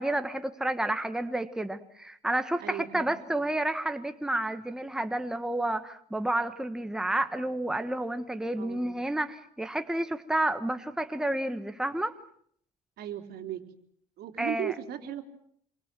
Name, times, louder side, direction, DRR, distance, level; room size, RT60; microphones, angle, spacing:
voice 1, 0.0-12.1 14.4-14.7, right 1 dB, 5° right, 8 dB, 1.4 m, -30 dB
voice 2, 2.6-3.1 8.6-9.0 13.0-13.6 14.2-15.2, right 11 dB, 70° right, 5 dB, 3.4 m, -36 dB
27.5 x 24.0 x 7.6 m, 0.66 s
cardioid pair, 110°, 17 cm